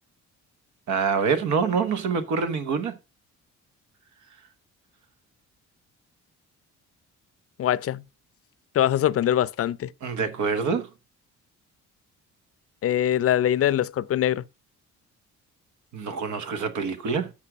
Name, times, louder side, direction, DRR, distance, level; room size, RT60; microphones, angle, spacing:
voice 1, 0.9-3.0 10.0-10.9 15.9-17.3, right 5 dB, 70° right, 1.2 m, -26 dB
voice 2, 7.6-8.0 8.7-9.9 12.8-14.4, left 11 dB, 50° left, 0.5 m, -23 dB
8.6 x 5.0 x 6.1 m
cardioid pair, 90°, 30 cm